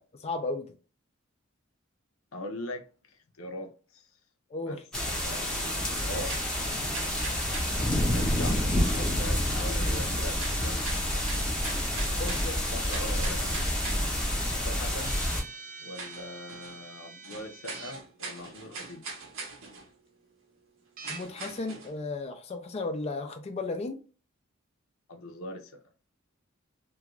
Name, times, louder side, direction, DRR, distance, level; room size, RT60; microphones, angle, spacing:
voice 1, 0.1-0.7 4.5-4.8 12.2-12.6 21.0-24.0, left 3 dB, 30° left, 0.3 m, -34 dB
voice 2, 2.3-4.1 4.6-4.8 5.1-6.5 8.1-11.3 11.9-13.6 14.6-15.2 15.8-19.0 25.1-25.8, left 1 dB, 85° left, 0.6 m, -41 dB
sound 1, 4.9-15.4, left 1 dB, 5° left, 0.7 m, -28 dB
sound 2, 6.3-8.1 10.4-14.1 15.5-15.6 15.9-16.8 17.2-19.9 21.0-22.0, right 3 dB, 70° right, 0.8 m, -42 dB
sound 3, 15.0-17.9 21.0-21.2, right 4 dB, 40° right, 0.4 m, -45 dB
2.4 x 2.3 x 2.9 m
head